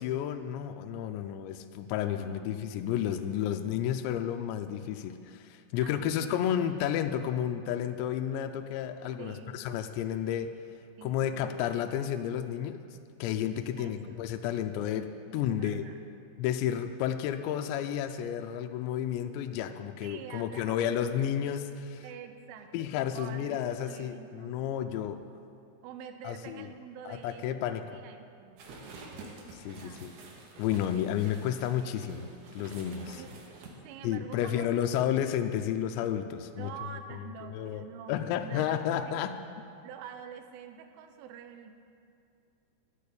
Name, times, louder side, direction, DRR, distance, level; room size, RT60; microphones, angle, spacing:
voice 1, 0.0-10.5 11.0-12.8 13.2-15.8 16.4-22.0 22.7-25.2 26.2-26.7 27.1-27.8 29.6-30.1 30.6-32.3 32.6-33.2 34.0-36.7 37.6-37.8 38.1-39.3, left 10 dB, 85° left, 6 dB, 2.7 m, -31 dB
voice 2, 2.1-3.9 5.8-6.6 9.2-9.9 11.0-11.7 13.8-14.2 15.3-16.0 20.0-21.2 22.0-24.6 25.8-29.0 29.8-30.1 30.9-31.3 33.2-33.3 33.8-35.1 36.6-39.3 39.8-41.7, right 7 dB, 80° right, 7 dB, 3.2 m, -47 dB
sound 1, 28.6-33.7, right 3 dB, 65° right, 3.0 m, -48 dB
11.5 x 8.5 x 8.3 m, 2.5 s
omnidirectional pair, 5.6 m